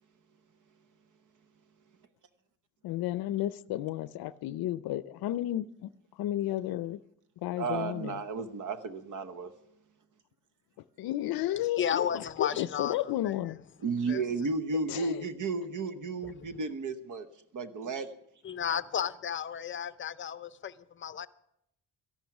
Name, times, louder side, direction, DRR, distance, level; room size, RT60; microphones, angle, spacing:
voice 1, 2.8-7.0 7.4-8.2 11.0-13.6 14.9-15.2, left 14 dB, 85° left, 0.5 m, -33 dB
voice 2, 7.6-9.5 13.8-17.3 17.5-18.1, right 3 dB, 60° right, 1.0 m, -33 dB
voice 3, 11.8-13.3 14.1-14.2 16.2-16.5 18.4-21.3, left 8 dB, 35° left, 0.5 m, -33 dB
13.5 x 11.5 x 5.9 m
cardioid pair, 145°, 35 cm